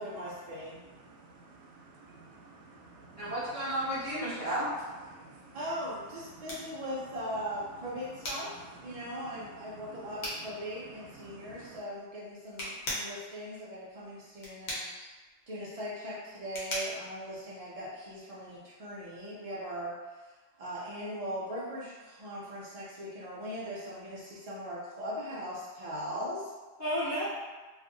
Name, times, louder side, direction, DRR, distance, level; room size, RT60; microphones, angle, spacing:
voice 1, 0.0-0.8 5.5-8.5 8.8-14.9 15.5-20.3 20.6-26.5, equal, 60° right, -7 dB, 0.4 m, -39 dB
voice 2, 0.8-3.3 5.1-5.6 6.3-6.8 8.5-11.8, right 3 dB, 80° right, -3 dB, 0.9 m, -53 dB
voice 3, 3.2-4.7 5.0-5.1 14.7-15.0 26.8-27.3, equal, 15° left, -11 dB, 0.7 m, -33 dB
sound 1, 5.7-18.2, left 1 dB, 70° left, 1.0 m, -42 dB
2.6 x 2.3 x 2.5 m, 1.3 s
omnidirectional pair, 1.2 m